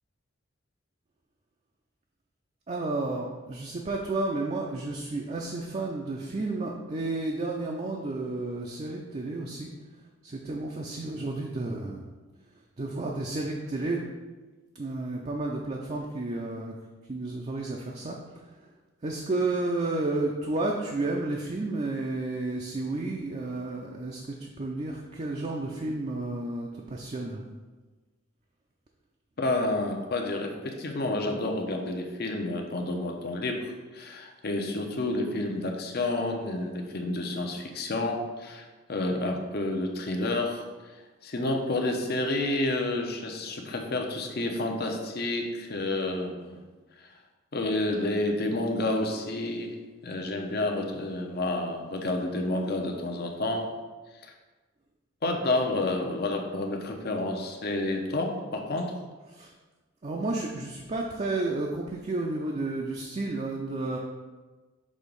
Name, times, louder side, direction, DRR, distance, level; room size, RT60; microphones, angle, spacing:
voice 1, 2.7-9.7 10.2-12.1 12.8-14.0 14.7-16.8 17.1-18.7 19.0-27.4 59.3-59.5 60.0-64.0, right 2 dB, 35° right, -1 dB, 0.5 m, -32 dB
voice 2, 29.4-40.6 41.2-46.6 47.0-47.1 47.5-49.7 50.0-53.7 55.2-58.9, left 2 dB, 55° left, 3 dB, 0.7 m, -30 dB
6.3 x 2.9 x 5.3 m, 1.3 s
head